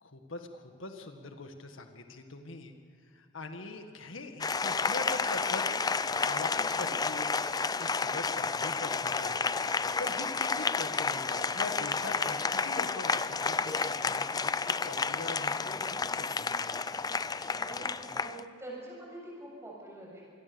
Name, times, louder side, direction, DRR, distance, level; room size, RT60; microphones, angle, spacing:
voice 1, 0.0-2.8 3.1-5.6 6.1-7.3 7.8-9.5 10.0-17.0, left 3 dB, 85° left, 6 dB, 1.8 m, -42 dB
Applause, 4.4-18.4, left 4 dB, 20° left, 0.5 m, -31 dB
voice 2, 17.6-20.2, right 1 dB, 15° right, -2 dB, 7.3 m, -45 dB
26.5 x 21.0 x 7.0 m, 2.4 s
head